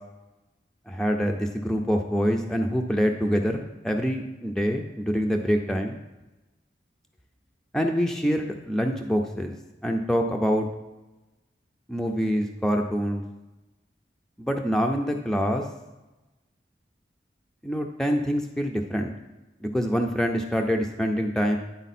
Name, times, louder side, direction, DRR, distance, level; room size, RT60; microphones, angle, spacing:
voice 1, 0.9-6.0 7.7-9.5 9.8-10.7 11.9-13.2 14.4-15.7 17.6-19.1 19.6-21.6, equal, 5° left, 2 dB, 0.4 m, -25 dB
10.0 x 4.1 x 4.1 m, 1.0 s
head